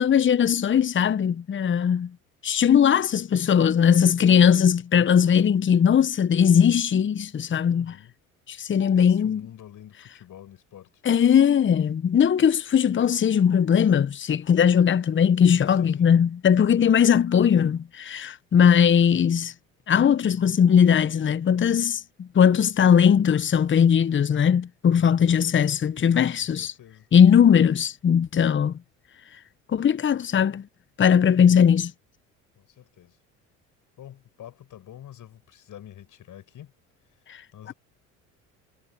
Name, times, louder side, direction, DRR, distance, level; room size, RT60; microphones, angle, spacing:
voice 1, 0.0-2.1 2.4-7.9 8.5-9.4 11.0-19.5 19.9-26.7 27.1-28.7 29.7-30.7 31.0-31.9 37.3-37.4, left 8 dB, 30° left, 1.1 m, -19 dB
voice 2, 7.7-8.1 8.9-11.0 15.7-16.1 25.0-25.5 26.4-27.1 32.6-33.2 34.0-36.7 37.5-37.7, left 11 dB, 50° left, 7.2 m, -47 dB
hypercardioid pair, 65°, 40 cm